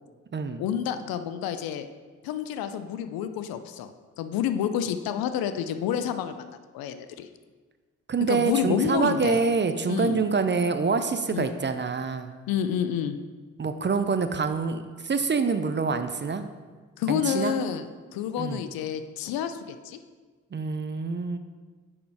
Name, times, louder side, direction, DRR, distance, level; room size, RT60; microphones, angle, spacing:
voice 1, 0.6-1.9 2.2-3.9 4.2-6.5 6.7-7.3 8.3-9.4 9.9-10.2 11.3-11.5 12.5-13.2 17.0-17.9 18.1-20.0, left 9 dB, 75° left, 10 dB, 0.6 m, -29 dB
voice 2, 8.1-12.3 13.6-16.5 17.1-17.6 18.4-18.6 20.5-21.4, right 4 dB, 30° right, 9 dB, 0.6 m, -26 dB
6.1 x 5.9 x 4.7 m, 1.4 s
hypercardioid pair, 45°, 36 cm